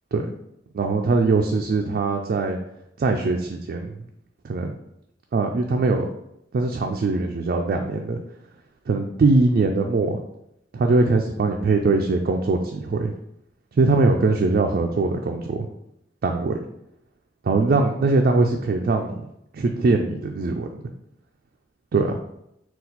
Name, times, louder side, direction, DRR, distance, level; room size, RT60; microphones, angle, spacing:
voice 1, 0.7-2.6 3.0-3.9 4.4-4.7 5.3-6.1 6.5-8.2 8.9-10.2 10.7-13.1 13.7-15.7 16.2-16.6 17.4-19.1 19.5-20.7 21.9-22.1, right 3 dB, 55° right, 2 dB, 0.3 m, -21 dB
4.2 x 2.3 x 4.0 m, 0.81 s
head